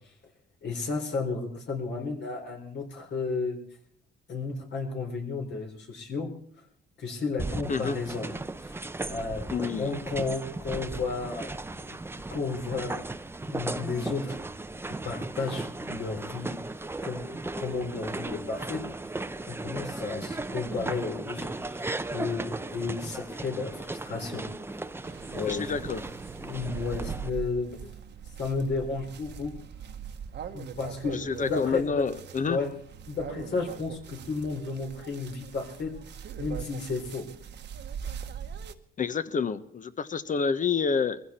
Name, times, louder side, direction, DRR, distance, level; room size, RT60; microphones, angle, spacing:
voice 1, 0.6-3.6 4.3-6.3 7.0-8.3 8.6-8.8 9.1-11.5 11.9-12.0 12.3-13.0 13.4-14.4 14.9-17.3 17.6-19.1 19.5-21.9 22.1-24.5 25.3-25.9 26.4-27.7 28.4-29.5 30.5-32.0 32.5-32.7 33.1-35.9 36.4-37.3, left 4 dB, 60° left, 2 dB, 4.2 m, -33 dB
sound 1, 7.4-27.3, right 2 dB, 10° right, 0.7 m, -36 dB
voice 2, 9.5-9.9 25.5-26.0 31.1-32.6 39.0-41.2, left 5 dB, 40° left, 13 dB, 1.1 m, -28 dB
sound 2, 25.0-38.7, right 7 dB, 60° right, 1.3 m, -41 dB
21.5 x 15.5 x 4.4 m, 0.66 s
cardioid pair, 90°, 20 cm